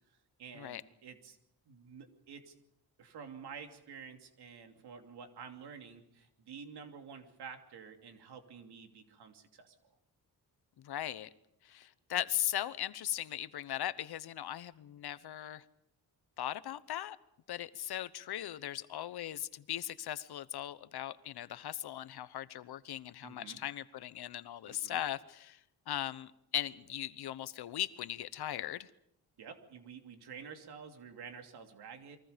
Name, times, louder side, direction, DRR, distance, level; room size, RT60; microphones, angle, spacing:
voice 1, 0.4-1.4 1.7-2.5 3.0-9.7 23.2-23.6 24.7-25.0 29.4-32.2, right 6 dB, 85° right, 5 dB, 2.9 m, -50 dB
voice 2, 10.8-11.3 11.6-15.6 16.4-17.2 17.5-25.6 25.9-28.9, left 12 dB, 75° left, 15 dB, 1.1 m, -38 dB
30.0 x 23.0 x 5.2 m, 0.74 s
wide cardioid pair, 160°, 39 cm